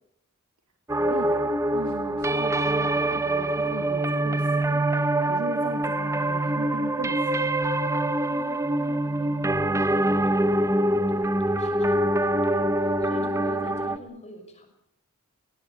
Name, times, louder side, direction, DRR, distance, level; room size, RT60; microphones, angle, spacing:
sound 1, 0.9-14.0, right 1 dB, 15° right, 0.9 m, -24 dB
voice 1, 0.9-4.9 5.3-7.5, right 2 dB, 80° right, 5 dB, 2.3 m, -38 dB
voice 2, 8.2-10.5 11.1-12.7 13.0-14.7, left 1 dB, 30° left, 5 dB, 6.0 m, -46 dB
20.5 x 19.0 x 8.8 m, 0.74 s
head